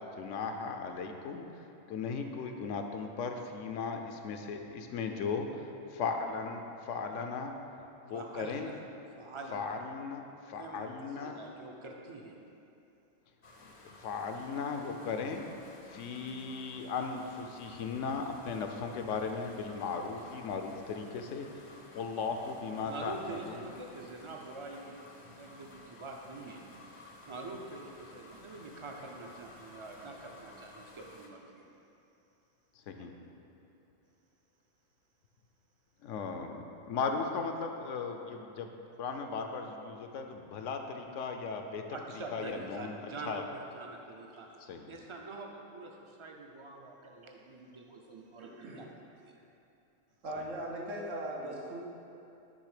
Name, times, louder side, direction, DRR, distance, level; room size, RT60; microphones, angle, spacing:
voice 1, 0.2-7.5 8.0-8.7 9.5-11.4 14.0-15.4 15.9-21.5 21.9-23.7 32.9-33.1 36.0-41.8 42.3-43.4 44.6-44.9 50.4-50.5, left 5 dB, 75° left, 5 dB, 0.9 m, -37 dB
voice 2, 8.1-8.8 9.2-9.7 10.6-12.4 22.8-26.6 27.2-31.7 41.9-44.5 44.9-48.8 49.2-49.3, right 2 dB, 40° right, 0 dB, 0.4 m, -45 dB
sound 1, 13.4-31.3, left 2 dB, 40° left, 0.5 m, -54 dB
voice 3, 48.4-48.8 50.2-51.8, right 1 dB, 85° right, -2 dB, 1.4 m, -39 dB
10.0 x 3.5 x 4.9 m, 2.8 s
omnidirectional pair, 1.3 m